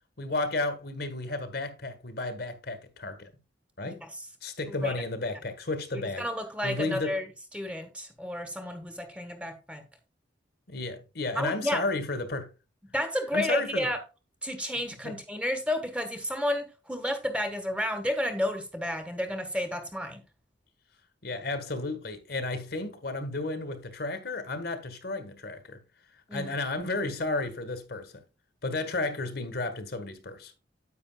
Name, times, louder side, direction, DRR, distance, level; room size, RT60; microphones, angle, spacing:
voice 1, 0.2-3.3 3.8-4.0 4.4-6.2 6.6-7.2 10.7-12.5 13.3-13.9 15.0-15.1 21.2-25.8 26.3-28.1 28.6-30.5, left 2 dB, 55° left, 1.5 m, -32 dB
voice 2, 5.9-7.3 7.5-9.8 11.3-11.8 12.9-14.0 14.4-20.2 26.3-26.5, left 1 dB, 5° right, 1.5 m, -31 dB
9.9 x 8.6 x 2.3 m
head